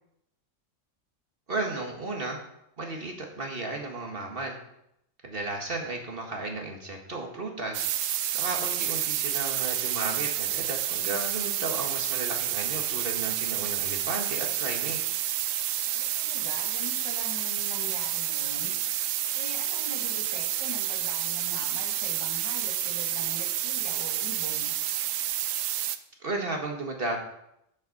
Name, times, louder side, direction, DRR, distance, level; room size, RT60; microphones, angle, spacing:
voice 1, 1.5-2.4 2.8-4.6 5.2-7.9 8.3-15.0 26.2-27.2, right 2 dB, 45° right, 1 dB, 1.8 m, -34 dB
sound 1, 7.7-26.0, right 11 dB, 80° right, 1.0 m, -29 dB
voice 2, 15.9-18.7 19.3-24.7, equal, 20° left, 0 dB, 2.0 m, -42 dB
8.1 x 7.4 x 6.5 m, 0.79 s
omnidirectional pair, 1.3 m